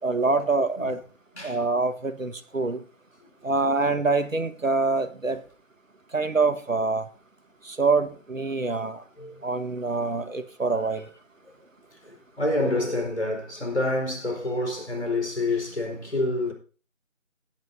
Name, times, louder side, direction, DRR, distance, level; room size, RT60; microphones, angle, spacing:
voice 1, 0.0-1.0 1.4-2.8 3.4-5.4 6.1-7.1 7.6-9.0 9.4-11.1, right 3 dB, 75° right, 1.4 m, -25 dB
voice 2, 9.8-10.2 12.0-16.5, left 2 dB, 55° left, 4.7 m, -28 dB
17.5 x 9.1 x 2.7 m
figure-of-eight pair, 175°, 39 cm